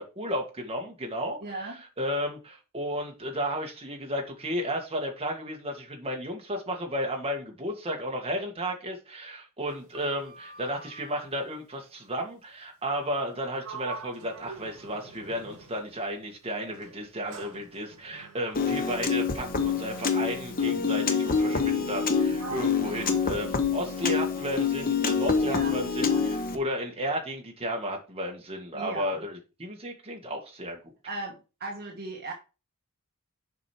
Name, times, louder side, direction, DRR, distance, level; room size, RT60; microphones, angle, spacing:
voice 1, 0.0-30.9, equal, 25° right, 1.9 m, -33 dB
voice 2, 1.4-1.8 25.4-25.7 26.0-26.2 28.7-29.2 31.0-32.3, right 2 dB, 45° right, 1.3 m, -37 dB
Sliding door, 9.7-11.3 13.1-13.4 13.6-16.1 16.7-24.2, right 4 dB, 75° right, 2.0 m, -46 dB
Piano, 18.5-26.6, left 5 dB, 40° left, 1.0 m, -26 dB
7.1 x 5.1 x 4.5 m
head